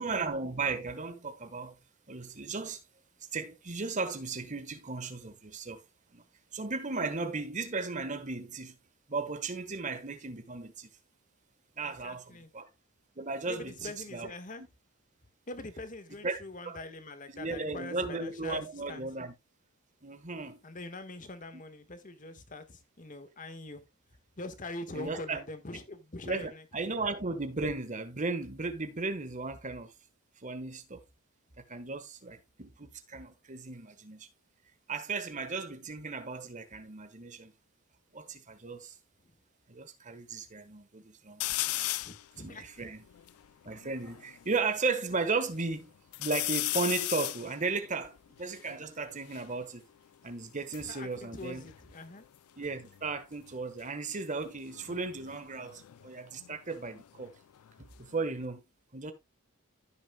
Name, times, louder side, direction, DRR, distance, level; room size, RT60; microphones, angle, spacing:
voice 1, 0.0-1.8 2.1-2.8 3.3-5.8 6.1-6.2 6.5-8.8 9.1-10.9 11.8-12.7 13.2-14.3 16.2-16.8 17.3-19.3 20.0-20.6 24.9-25.4 26.2-29.9 30.4-31.0 31.7-34.3 34.9-37.5 38.1-39.0 39.7-41.9 42.4-43.0 43.6-45.9 46.2-49.8 50.2-51.7 52.6-57.3 57.8-58.6 58.9-59.1, right 3 dB, 35° right, 1.3 m, -35 dB
voice 2, 11.8-12.5 13.5-14.6 15.5-18.6 18.9-19.0 20.6-23.8 24.4-26.6 42.0-42.7 50.9-52.2, left 2 dB, 35° left, 1.4 m, -43 dB
sound 1, 41.4-42.2 42.8-42.9 43.1-44.6 45.1-45.7 46.1-49.5 50.4-52.4 52.6-53.1 54.7-57.3 57.7-58.5, left 18 dB, 80° left, 0.4 m, -37 dB
15.5 x 6.3 x 2.2 m
head